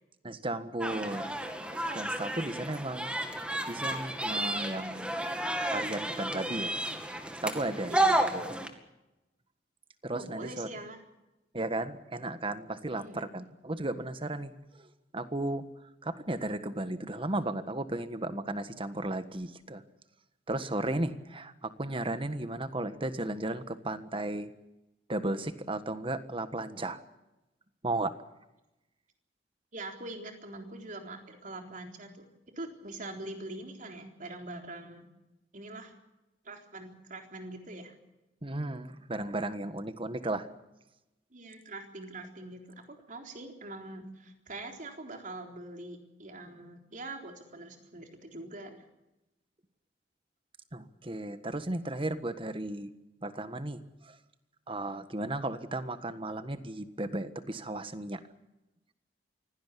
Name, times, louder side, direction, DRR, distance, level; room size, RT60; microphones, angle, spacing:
voice 1, 0.2-1.4 1.9-3.1 3.7-5.1 5.7-6.8 7.4-8.0 8.3-8.5 10.0-10.7 11.5-14.9 15.1-15.6 16.0-19.8 20.5-24.5 25.1-27.0 27.8-28.2 38.4-40.5 50.7-52.9 53.2-54.1 54.7-58.2, right 2 dB, 30° right, 11 dB, 1.5 m, -35 dB
sound 1, 0.8-8.7, right 1 dB, 5° right, 2.2 m, -32 dB
voice 2, 7.9-8.4 10.1-11.1 12.9-13.3 29.7-32.3 32.6-35.1 35.5-35.9 36.4-37.9 41.3-48.9, right 2 dB, 50° right, 3 dB, 3.9 m, -43 dB
24.5 x 17.0 x 8.5 m, 0.98 s
head